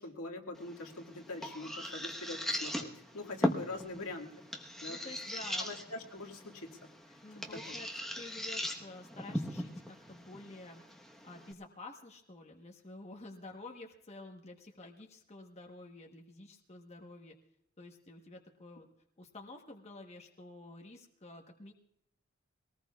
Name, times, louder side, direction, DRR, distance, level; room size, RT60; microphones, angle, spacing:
voice 1, 0.0-4.5 4.8-5.0 5.6-6.8 7.5-7.6, left 2 dB, 75° left, 1 dB, 1.9 m, -43 dB
sound 1, 0.6-11.5, equal, ahead, 1.1 m, -39 dB
voice 2, 4.9-5.7 7.2-7.9 8.2-10.8 11.2-17.3 17.8-18.9 19.2-21.7, left 2 dB, 30° left, 2 dB, 1.1 m, -50 dB
22.0 x 19.0 x 2.4 m, 0.73 s
head